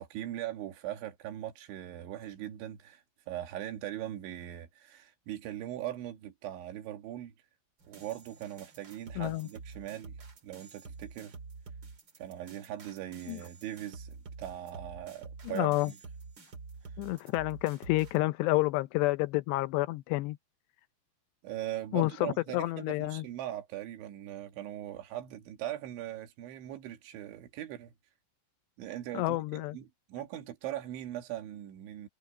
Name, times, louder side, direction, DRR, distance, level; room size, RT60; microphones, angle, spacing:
voice 1, 0.0-7.3 7.9-10.2 10.4-11.4 12.2-16.0 21.4-27.9 28.8-32.1, right 12 dB, 85° right, 4.4 m, -40 dB
sound 1, 7.8-18.2, right 4 dB, 35° right, 2.2 m, -48 dB
voice 2, 9.2-9.5 13.3-13.4 15.4-15.9 17.0-20.4 21.9-23.2 29.1-29.8, left 19 dB, 80° left, 2.6 m, -29 dB
omnidirectional pair, 5.2 m